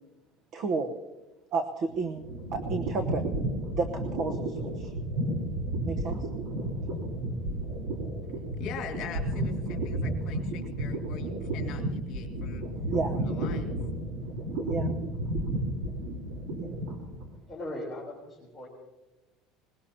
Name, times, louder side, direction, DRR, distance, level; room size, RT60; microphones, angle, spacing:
voice 1, 0.5-0.9 1.5-2.3 2.5-3.3 3.7-4.9 5.8-6.2 12.9-13.2 14.6-14.9 16.6-16.7, right 4 dB, 40° right, 7 dB, 0.9 m, -31 dB
sound 1, 1.9-17.3, right 1 dB, 75° right, 3.7 m, -32 dB
voice 2, 8.6-12.6 13.2-13.8, left 7 dB, 45° left, 2 dB, 2.2 m, -43 dB
voice 3, 17.5-18.7, left 1 dB, 5° left, -7 dB, 3.5 m, -39 dB
22.0 x 20.5 x 2.9 m, 1.1 s
cardioid pair, 180°, 0 cm